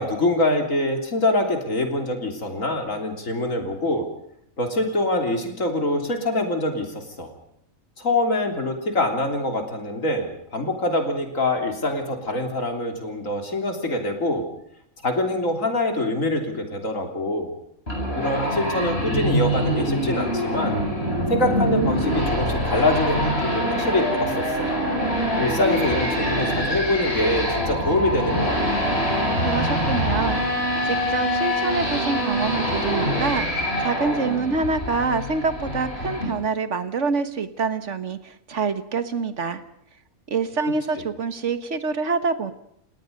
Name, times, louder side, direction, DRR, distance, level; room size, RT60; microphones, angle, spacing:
voice 1, 0.0-4.1 4.6-7.3 8.0-14.4 15.0-17.5 18.1-20.8 21.3-24.7 25.4-28.8, left 2 dB, 70° left, 4 dB, 3.8 m, -24 dB
sound 1, 17.9-36.2, equal, 45° left, 8.3 m, -24 dB
voice 2, 29.4-30.4 30.8-39.6 40.3-42.5, right 4 dB, 60° right, 11 dB, 1.7 m, -26 dB
30.0 x 18.5 x 5.3 m, 0.72 s
omnidirectional pair, 1.4 m